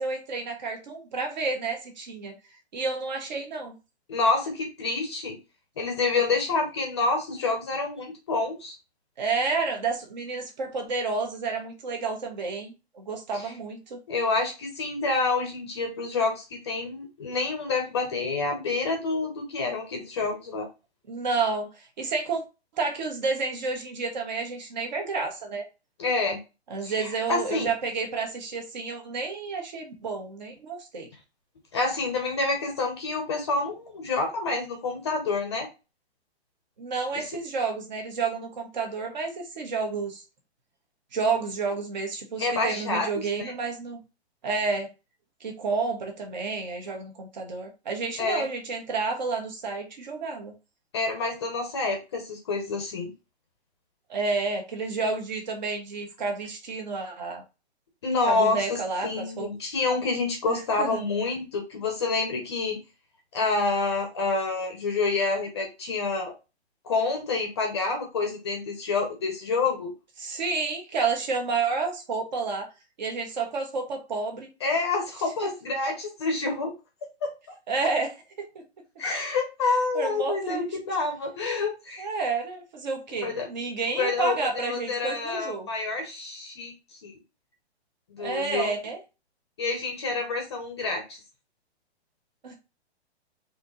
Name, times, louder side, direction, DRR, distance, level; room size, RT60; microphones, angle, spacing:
voice 1, 0.0-2.3 2.7-3.7 9.2-14.0 21.1-22.4 22.7-25.6 26.7-31.1 36.8-40.2 41.1-44.0 44.4-44.9 45.4-50.5 54.1-57.4 58.2-59.5 60.5-61.0 70.2-72.7 73.0-74.5 75.4-75.5 77.7-78.5 79.9-80.7 82.0-85.7 88.2-89.0 92.4-92.6, right 4 dB, 40° right, 3 dB, 1.2 m, -30 dB
voice 2, 4.1-5.4 5.8-8.8 13.3-13.5 14.1-20.7 26.0-26.4 26.8-27.7 31.7-35.7 37.1-37.2 42.4-43.5 48.2-48.5 50.9-53.1 58.0-62.8 63.3-66.3 66.8-69.9 74.6-76.7 77.2-77.3 79.0-82.1 83.2-83.5 84.0-86.7 87.0-87.2 88.2-88.7 89.6-91.2, left 3 dB, 25° left, 3 dB, 0.8 m, -28 dB
4.2 x 2.8 x 3.9 m, 0.28 s
hypercardioid pair, 175°, 33 cm